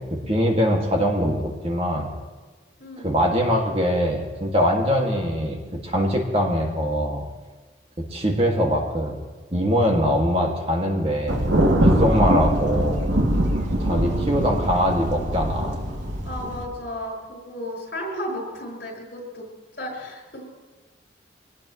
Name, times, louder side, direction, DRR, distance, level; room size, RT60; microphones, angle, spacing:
voice 1, 0.0-2.1 3.0-7.2 8.1-9.2 9.5-11.5 11.8-13.1 13.8-15.8, equal, 30° right, 0 dB, 2.3 m, -22 dB
voice 2, 2.8-3.1 16.2-19.5 19.8-20.4, equal, 60° left, -2 dB, 6.0 m, -34 dB
Thunder, 11.3-16.6, right 1 dB, 85° right, 2.7 m, -22 dB
24.0 x 18.5 x 3.2 m, 1.3 s
head